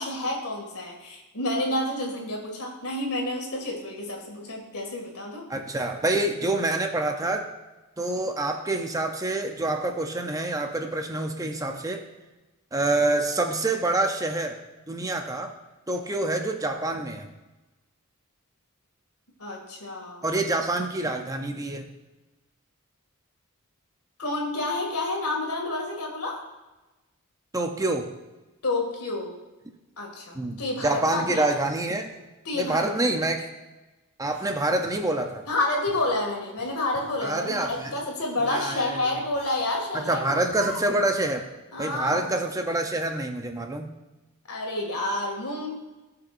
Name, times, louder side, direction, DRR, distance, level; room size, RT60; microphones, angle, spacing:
voice 1, 0.0-5.5 19.4-20.3 24.2-26.4 28.6-29.4 30.0-31.5 32.4-33.1 35.5-40.5 41.7-42.2 44.5-45.7, left 2 dB, 80° left, 1 dB, 2.2 m, -29 dB
voice 2, 5.5-7.5 8.0-12.0 12.7-14.6 14.9-15.5 15.9-17.3 20.2-21.9 27.5-28.1 30.3-32.1 32.5-33.5 34.2-35.4 37.2-37.9 38.5-39.0 40.1-41.4 41.8-43.9, right 2 dB, 15° right, 4 dB, 0.6 m, -26 dB
sound 1, 34.3-35.4 35.8-36.1 36.6-37.1 37.5-38.0 38.4-38.8 39.3-39.8 40.5-41.1, right 1 dB, 10° left, 3.1 m, -45 dB
17.5 x 5.8 x 2.6 m, 1.1 s
head